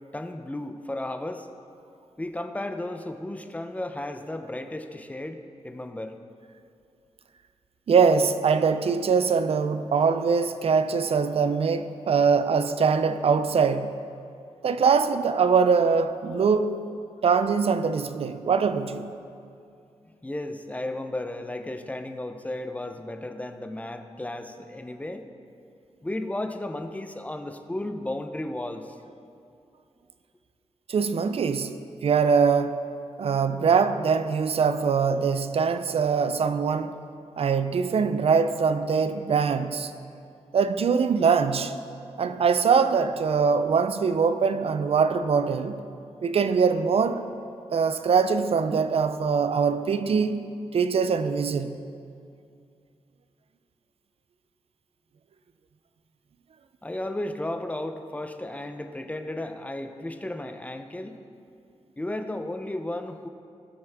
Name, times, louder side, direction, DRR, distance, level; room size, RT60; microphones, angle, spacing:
voice 1, 0.1-1.5 2.2-5.4 5.6-6.2 20.2-25.2 26.0-29.0 56.8-61.2 62.0-63.3, left 1 dB, 15° left, 0.7 m, -34 dB
voice 2, 7.9-13.9 14.6-16.8 17.2-19.1 30.9-31.8 32.0-32.8 33.2-37.0 37.4-39.9 40.5-41.7 42.2-45.8 46.2-47.2 47.7-50.4 50.7-51.8, right 5 dB, 60° right, 0.5 m, -23 dB
18.0 x 6.2 x 3.6 m
cardioid pair, 75°, 11 cm